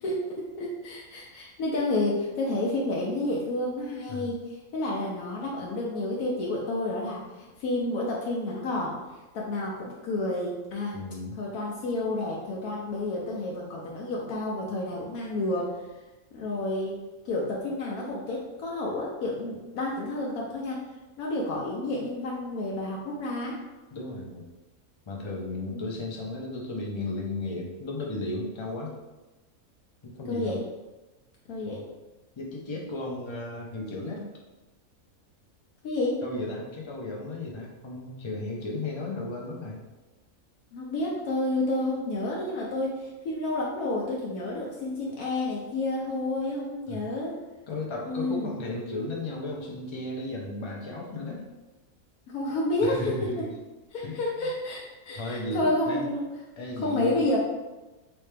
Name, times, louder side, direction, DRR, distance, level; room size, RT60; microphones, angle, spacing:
voice 1, 0.0-9.0 9.3-10.9 11.4-15.7 16.3-17.0 17.3-20.8 21.2-23.6 25.7-25.8 30.3-30.6 31.5-31.8 35.8-36.2 40.7-47.4 48.0-48.5 52.3-53.0 53.9-56.3 56.8-57.4, left 2 dB, 85° left, -3 dB, 1.1 m, -30 dB
voice 2, 10.9-11.4 23.9-24.4 25.1-28.9 30.0-30.6 31.6-31.8 32.4-34.3 36.2-39.8 46.9-47.1 47.7-51.4 52.8-53.5 54.0-54.5 55.2-56.1 56.6-57.2, left 2 dB, 45° left, -2 dB, 0.3 m, -35 dB
3.3 x 3.1 x 3.2 m, 1.1 s
omnidirectional pair, 1.5 m